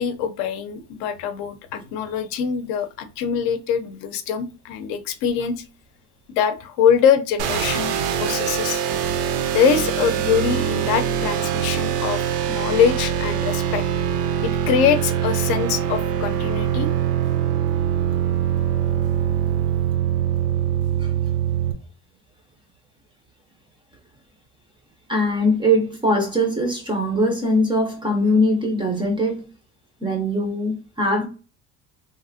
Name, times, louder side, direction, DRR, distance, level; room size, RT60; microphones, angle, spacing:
voice 1, 0.0-5.6 6.3-8.8 9.5-12.2 12.5-13.8 14.4-16.9, left 7 dB, 65° left, 0.6 m, -23 dB
sound 1, 7.4-21.7, right 9 dB, 70° right, 0.6 m, -23 dB
voice 2, 25.1-29.5 30.0-31.3, equal, 15° right, 0.4 m, -21 dB
3.1 x 2.4 x 2.5 m
cardioid pair, 155°, 39 cm